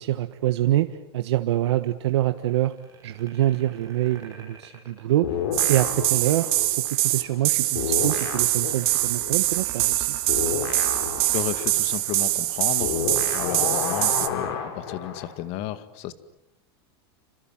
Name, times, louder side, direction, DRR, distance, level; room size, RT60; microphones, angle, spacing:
voice 1, 0.0-2.7 3.0-5.4 5.7-10.2, right 13 dB, 85° right, 9 dB, 1.4 m, -25 dB
sound 1, 2.6-5.8 7.2-12.7, right 7 dB, 25° right, 8.0 m, -44 dB
sound 2, 5.2-7.5 7.7-15.3, left 7 dB, 75° left, 7.0 m, -31 dB
sound 3, 5.5-14.3, right 19 dB, 65° right, 2.4 m, -24 dB
voice 2, 11.2-16.1, left 13 dB, 45° left, 13 dB, 2.1 m, -33 dB
29.0 x 26.5 x 7.5 m, 0.83 s
supercardioid pair, 150°, 14 cm